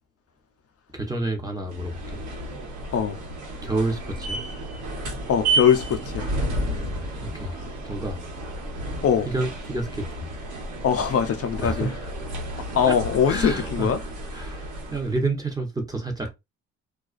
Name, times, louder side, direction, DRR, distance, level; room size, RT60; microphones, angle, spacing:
voice 1, 0.9-2.2 3.6-4.4 6.6-7.5 7.8-8.2 9.3-10.3 11.6-12.1 12.9-13.0 13.3-16.3, right 2 dB, 10° right, 0.8 m, -30 dB
sound 1, 1.7-15.2, right 2 dB, 80° right, 1.2 m, -32 dB
voice 2, 5.3-6.3 9.0-9.3 10.8-11.9 12.7-14.0, left 8 dB, 50° left, 0.5 m, -22 dB
2.3 x 2.3 x 2.3 m
cardioid pair, 90°, 30 cm